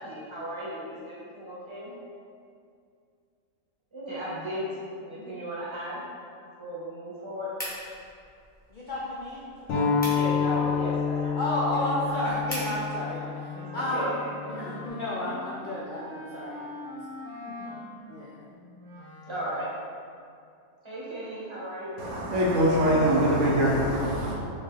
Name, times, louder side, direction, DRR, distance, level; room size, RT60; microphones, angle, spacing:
voice 1, 0.0-1.9 3.9-6.0 6.6-7.6 10.1-11.4 11.7-12.1 13.5-14.1 17.4-17.8 19.2-19.7 20.8-22.0, equal, 25° right, -7 dB, 1.0 m, -36 dB
sound 1, 7.5-12.8, equal, 5° left, 0.9 m, -43 dB
voice 2, 8.7-10.1 10.4-10.7 11.4-13.3 13.7-17.0 18.1-18.4, left 1 dB, 55° left, -6 dB, 0.5 m, -32 dB
sound 2, 9.7-14.9, left 6 dB, 80° left, 1.2 m, -29 dB
Wind instrument woodwind instrument, 13.1-19.7, left 2 dB, 85° right, 1.7 m, -43 dB
voice 3, 22.0-24.3, equal, 65° right, -4 dB, 1.1 m, -23 dB
4.5 x 3.5 x 3.2 m, 2.4 s
omnidirectional pair, 1.4 m